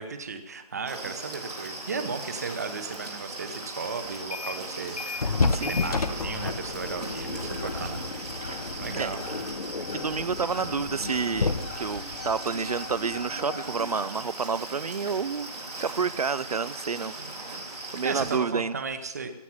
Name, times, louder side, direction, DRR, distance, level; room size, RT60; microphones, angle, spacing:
voice 1, 0.0-5.3 5.7-8.0 8.8-9.5 18.0-19.3, right 4 dB, 25° right, 10 dB, 0.9 m, -35 dB
sound 1, 0.9-18.4, right 2 dB, 90° right, 3.8 m, -39 dB
sound 2, 4.1-4.7 5.0-13.4, left 4 dB, 70° left, 1.0 m, -32 dB
sound 3, 4.6-14.1, left 3 dB, 20° left, 1.3 m, -45 dB
voice 2, 5.4-5.8 7.3-7.4 8.4-8.7 8.9-9.1 9.9-15.5 15.8-17.1 17.9-18.7, right 5 dB, 70° right, 17 dB, 0.6 m, -29 dB
16.0 x 9.1 x 7.3 m, 1.1 s
hypercardioid pair, 175°, 20 cm